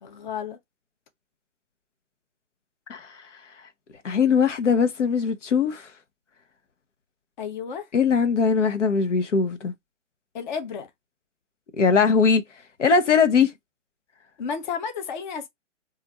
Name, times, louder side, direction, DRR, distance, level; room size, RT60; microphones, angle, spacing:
voice 1, 0.0-0.6 7.4-7.9 10.3-10.9 14.4-15.5, left 6 dB, 40° left, 0.9 m, -32 dB
voice 2, 4.0-5.9 7.9-9.7 11.8-12.4 12.8-13.5, left 5 dB, 75° left, 1.0 m, -20 dB
4.1 x 2.6 x 4.1 m
hypercardioid pair, 150°, 36 cm